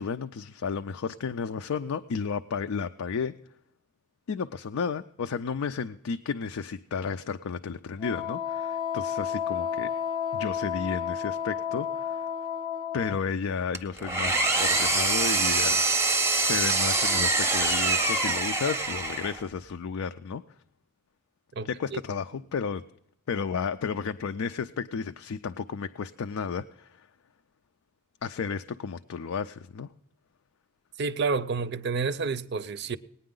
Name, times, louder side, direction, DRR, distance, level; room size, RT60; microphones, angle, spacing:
voice 1, 0.0-3.4 4.3-9.9 10.3-12.3 12.9-15.9 16.3-20.4 21.6-22.8 23.3-27.1 28.2-29.9, left 6 dB, 80° left, 0.4 m, -32 dB
Wind instrument woodwind instrument, 8.0-13.2, left 8 dB, 25° left, 0.6 m, -31 dB
Engine, 13.7-19.5, right 3 dB, 15° right, 0.6 m, -25 dB
voice 2, 21.6-22.0 31.0-33.0, right 4 dB, 50° right, 0.5 m, -29 dB
18.5 x 9.5 x 3.8 m
head